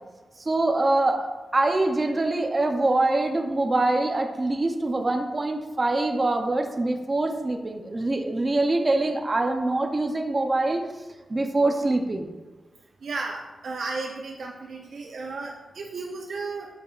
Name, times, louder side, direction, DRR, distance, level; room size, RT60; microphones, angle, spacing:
voice 1, 0.5-1.3 1.5-10.9 11.3-12.3, right 2 dB, 25° right, 3 dB, 0.6 m, -24 dB
voice 2, 13.0-16.7, right 3 dB, 70° right, 0 dB, 0.5 m, -34 dB
8.1 x 5.3 x 2.4 m, 1.2 s
wide cardioid pair, 140°, 0 cm